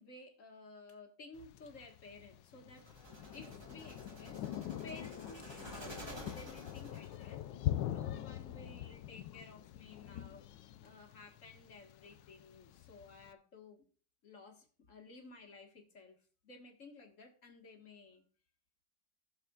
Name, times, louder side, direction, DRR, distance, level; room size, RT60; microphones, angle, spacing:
voice 1, 0.0-4.5 4.8-6.0 6.3-7.4 7.9-10.4 10.8-13.8 14.2-16.2 16.4-18.2, left 3 dB, 45° left, 2 dB, 1.9 m, -54 dB
Thunder, 1.4-13.3, left 12 dB, 85° left, 1.3 m, -43 dB
sound 1, 2.8-7.3, right 1 dB, 15° right, 1.4 m, -52 dB
16.5 x 6.8 x 2.4 m, 0.42 s
omnidirectional pair, 1.9 m